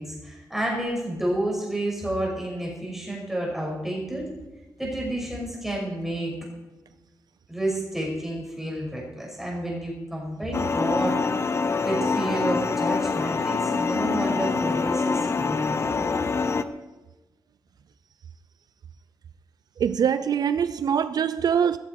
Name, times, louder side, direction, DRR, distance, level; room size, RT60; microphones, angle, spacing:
voice 1, 0.0-4.2 4.8-6.3 7.5-11.2 11.8-16.1, right 1 dB, 5° right, 6.0 m, -30 dB
sound 1, 10.5-16.6, left 4 dB, 40° left, 0.8 m, -25 dB
voice 2, 19.8-21.8, right 8 dB, 70° right, 0.5 m, -23 dB
15.5 x 14.0 x 4.7 m
wide cardioid pair, 155°, 7 cm